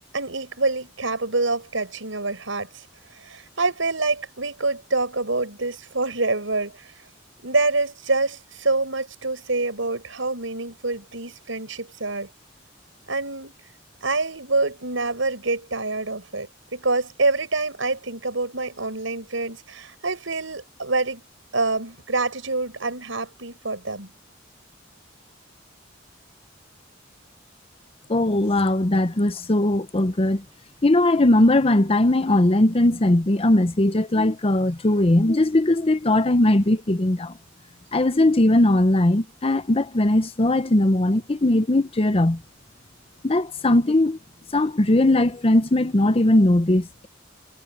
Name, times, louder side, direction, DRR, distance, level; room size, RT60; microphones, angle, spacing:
voice 1, 0.1-2.8 3.1-6.9 7.4-12.3 13.1-13.5 14.0-21.2 21.5-24.1, right 3 dB, 80° right, 5.9 m, -26 dB
voice 2, 28.1-30.4 30.8-37.3 37.9-42.4 43.2-44.2 44.5-47.1, left 1 dB, 30° left, 0.8 m, -19 dB
head